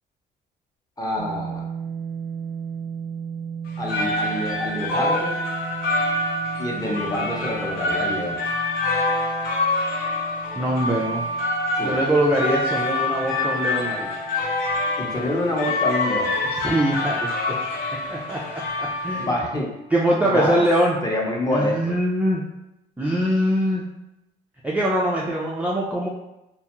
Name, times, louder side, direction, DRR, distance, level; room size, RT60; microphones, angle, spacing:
voice 1, 1.0-1.6 3.8-5.3 6.6-8.4 11.8-12.0 15.0-16.3 19.2-19.7 20.2-20.6 21.0-22.0, left 1 dB, 20° left, -2 dB, 0.7 m, -26 dB
sound 1, 1.2-17.1, right 7 dB, 80° right, 0.4 m, -37 dB
sound 2, 3.7-19.5, left 2 dB, 60° left, 0.5 m, -26 dB
voice 2, 10.5-11.2 11.8-14.1 16.6-17.5 18.1-19.3 19.9-21.0 21.4-22.4 23.0-23.8 24.6-26.1, equal, 10° right, -5 dB, 0.4 m, -23 dB
2.5 x 2.3 x 2.9 m, 0.89 s
cardioid pair, 110°, 17 cm